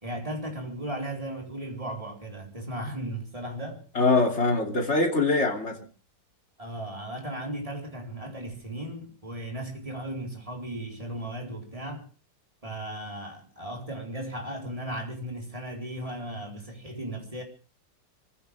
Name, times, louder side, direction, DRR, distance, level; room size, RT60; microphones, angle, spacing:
voice 1, 0.0-3.8 6.6-12.1 12.6-17.4, right 1 dB, 15° right, 4.3 m, -36 dB
voice 2, 3.9-5.9, left 3 dB, 35° left, 3.4 m, -23 dB
25.5 x 15.5 x 3.5 m
omnidirectional pair, 2.0 m